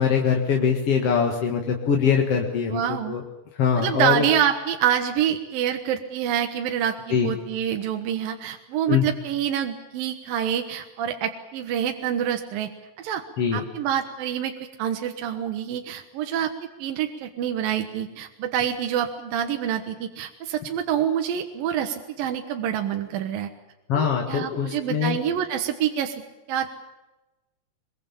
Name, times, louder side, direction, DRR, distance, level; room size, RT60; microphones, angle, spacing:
voice 1, 0.0-3.2 3.5-4.3 7.1-7.3 8.9-9.1 13.4-13.7 23.9-25.2, left 7 dB, 45° left, 2 dB, 2.1 m, -23 dB
voice 2, 2.7-3.2 3.8-12.7 13.0-13.2 13.5-14.5 14.8-16.5 16.8-23.5 23.9-26.2 26.5-26.8, right 9 dB, 65° right, 5 dB, 2.7 m, -26 dB
23.5 x 23.0 x 7.2 m, 1.0 s
omnidirectional pair, 4.9 m